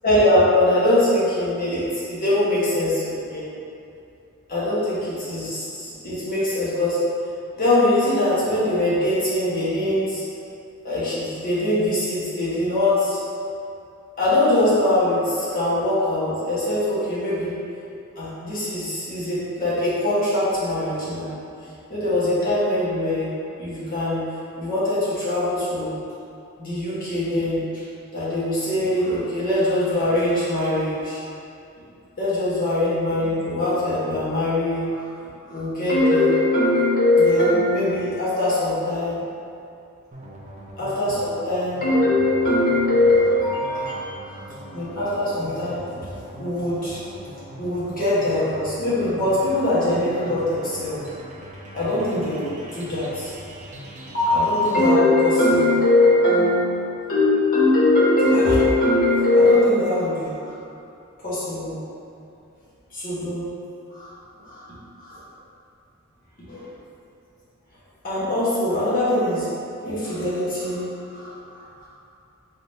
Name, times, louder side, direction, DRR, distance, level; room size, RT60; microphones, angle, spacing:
voice 1, 0.0-3.4 4.5-7.0 7.6-10.2 10.8-13.2 14.2-17.6 18.2-21.3 21.9-23.3 23.6-24.2 24.6-26.0 26.6-27.8 28.1-31.2 32.2-35.1 35.5-39.2 40.8-44.4 44.7-46.1 46.4-47.0 47.6-51.0 51.7-53.3 54.1-60.5 61.2-61.8 62.9-63.5 63.9-64.1 64.4-64.7 65.0-65.2 66.5-66.7 68.0-69.5 69.8-71.9, left 1 dB, 40° left, -10 dB, 1.3 m, -22 dB
sound 1, 40.1-54.9, equal, 35° right, 0.5 m, -41 dB
4.0 x 3.5 x 2.7 m, 2.6 s
head